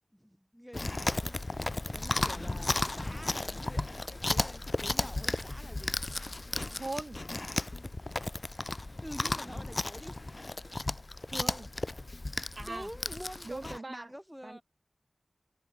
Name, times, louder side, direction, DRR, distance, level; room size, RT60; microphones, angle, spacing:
voice 1, 0.1-1.3 1.6-6.0 9.0-10.1 12.6-14.6, equal, ahead, 2.6 m, -47 dB
Chewing mastication, 0.7-13.8, left 2 dB, 40° left, 0.6 m, -34 dB
voice 2, 6.8-7.2 11.3-11.7 12.6-12.9 13.5-14.1 14.4-14.6, right 2 dB, 45° right, 0.5 m, -40 dB
wide cardioid pair, 70°, 0 cm